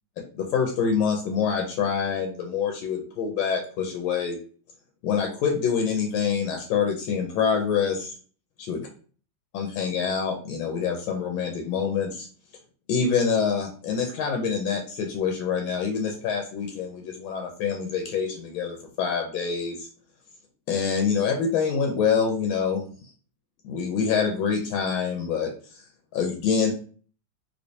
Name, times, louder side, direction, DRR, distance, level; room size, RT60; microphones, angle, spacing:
voice 1, 0.3-4.4 5.0-8.1 8.6-8.8 9.5-12.3 12.9-19.9 20.7-22.9 23.6-25.5 26.1-26.7, left 6 dB, 75° left, 2 dB, 1.3 m, -26 dB
3.1 x 3.1 x 2.7 m, 0.43 s
omnidirectional pair, 2.4 m